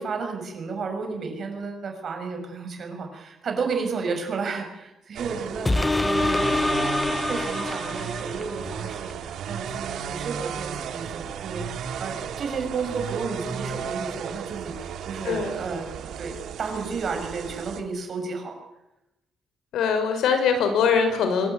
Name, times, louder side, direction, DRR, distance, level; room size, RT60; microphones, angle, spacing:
voice 1, 0.0-5.7 6.0-6.5 7.2-18.6, right 4 dB, 40° right, 5 dB, 6.8 m, -32 dB
sound 1, 5.2-17.8, right 8 dB, 70° right, 2.8 m, -34 dB
sound 2, 5.7-8.6 9.1-9.2, left 2 dB, 10° left, 0.9 m, -25 dB
voice 2, 19.7-21.5, left 6 dB, 75° left, 7 dB, 6.1 m, -22 dB
25.5 x 22.0 x 9.5 m, 0.93 s
cardioid pair, 165°, 0 cm